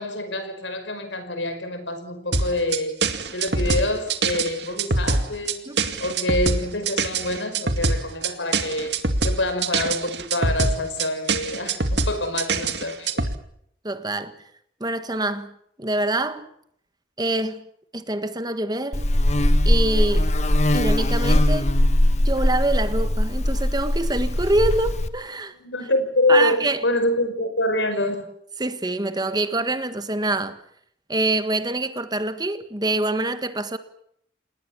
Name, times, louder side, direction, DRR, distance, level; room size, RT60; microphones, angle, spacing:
voice 1, 0.0-3.0 3.3-5.7 6.0-9.0 9.2-13.3 25.6-28.3, left 1 dB, 80° left, 5.2 m, -26 dB
sound 1, 2.3-13.3, right 3 dB, 65° right, 2.3 m, -24 dB
voice 2, 13.8-14.3 14.8-16.5 17.2-17.6 17.9-19.0 19.6-20.3 20.7-21.7 22.2-25.5 26.3-26.8 28.6-30.6 31.1-33.8, right 2 dB, 20° right, 1.5 m, -25 dB
Buzz, 18.9-25.1, left 1 dB, 40° left, 1.4 m, -20 dB
28.5 x 19.5 x 7.3 m
head